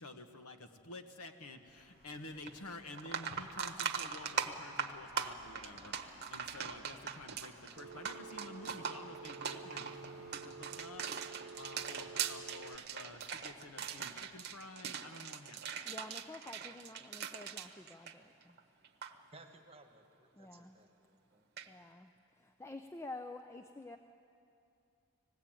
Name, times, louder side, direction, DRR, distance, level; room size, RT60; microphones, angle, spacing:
voice 1, 0.0-15.6, left 2 dB, 80° left, 6 dB, 1.3 m, -51 dB
sound 1, 1.5-14.8, equal, 40° left, 6.0 m, -61 dB
sound 2, 2.5-2.6 2.9-18.6 18.8-19.1 21.6-21.7, right 7 dB, 45° right, 1.0 m, -41 dB
Telephone, 7.8-12.8, right 5 dB, 70° right, 0.5 m, -50 dB
voice 2, 15.8-18.6 20.4-20.8 21.7-22.1 22.4-24.0, left 2 dB, 10° left, 7 dB, 0.4 m, -49 dB
voice 3, 19.3-21.5, right 2 dB, 25° right, 3 dB, 1.3 m, -59 dB
20.0 x 16.0 x 8.9 m, 2.6 s
head